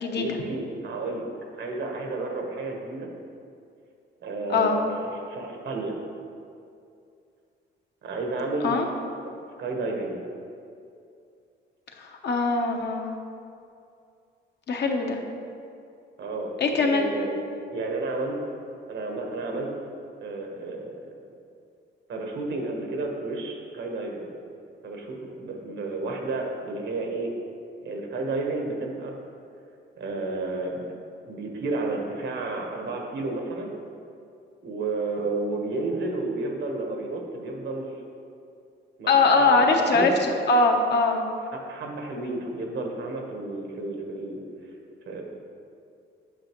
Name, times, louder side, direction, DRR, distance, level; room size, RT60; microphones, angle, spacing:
voice 1, 0.1-1.2 1.5-3.1 4.2-6.0 8.0-8.8 9.6-10.2 16.2-16.5 16.8-17.4 17.7-18.4 18.9-19.7 20.2-21.0 22.1-24.3 24.8-27.4 27.8-29.1 30.0-30.9 31.2-33.7 34.6-37.9 39.0-40.1 41.5-44.4 45.1-45.2, right 2 dB, 65° right, 1 dB, 1.2 m, -31 dB
voice 2, 12.0-13.1 14.7-15.2 16.6-17.1 39.1-40.1 40.5-41.2, left 3 dB, 60° left, 2 dB, 0.9 m, -21 dB
8.8 x 5.7 x 3.0 m, 2.5 s
cardioid pair, 90°, 20 cm